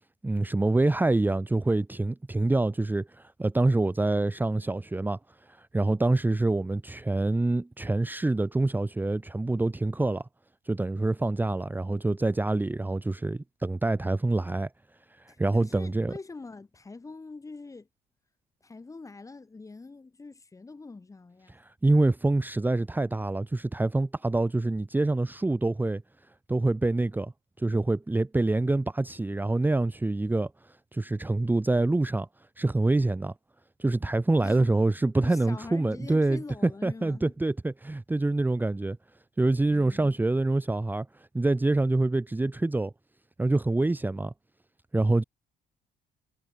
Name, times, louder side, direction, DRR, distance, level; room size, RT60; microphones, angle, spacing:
voice 1, 0.2-10.3 10.6-14.7 15.1-16.1 21.6-26.0 26.5-27.3 27.6-32.3 32.6-33.3 33.8-39.0 39.4-42.9 43.4-44.3 44.9-45.2, right 2 dB, 10° right, 1.3 m, -26 dB
voice 2, 15.3-17.9 18.6-21.5 34.4-34.8 35.2-37.3 39.7-40.2, left 3 dB, 20° left, 2.7 m, -44 dB
cardioid pair, 110°, 17 cm